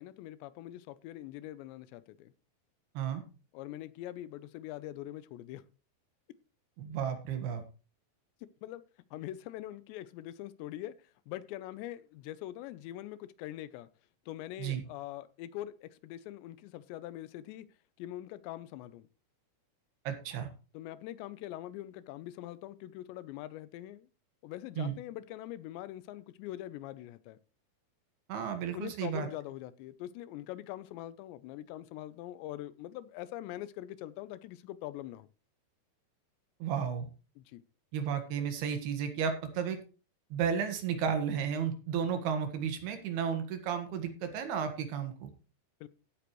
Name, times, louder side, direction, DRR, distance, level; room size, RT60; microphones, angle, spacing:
voice 1, 0.0-2.3 3.5-5.6 8.6-8.8 9.1-10.9 11.3-13.9 14.3-17.7 18.0-19.1 20.7-24.1 24.4-27.4 28.7-35.3 37.4-37.6 45.8-45.9, left 14 dB, 85° left, 3.0 m, -43 dB
voice 2, 6.8-7.6 14.6-14.8 20.0-20.5 24.8-25.0 28.3-29.3 36.6-37.1 37.9-39.8 40.3-45.3, right 7 dB, 70° right, 3.4 m, -33 dB
16.0 x 8.4 x 3.1 m
omnidirectional pair, 5.0 m